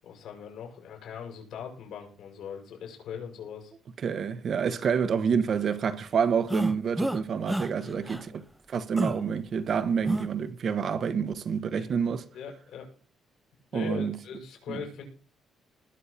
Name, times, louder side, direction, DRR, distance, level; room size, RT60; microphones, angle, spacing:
voice 1, 0.0-3.7 7.8-8.1 11.7-11.9 12.3-12.9 13.7-15.0, left 7 dB, 75° left, 6.8 m, -40 dB
voice 2, 4.0-12.2 13.7-14.2 14.7-14.8, right 6 dB, 45° right, 1.2 m, -28 dB
sound 1, 6.5-7.2 7.5-7.7 8.1-8.2 9.0-9.2 10.1-10.3, equal, ahead, 0.6 m, -30 dB
19.5 x 6.7 x 4.2 m
cardioid pair, 140°, 0 cm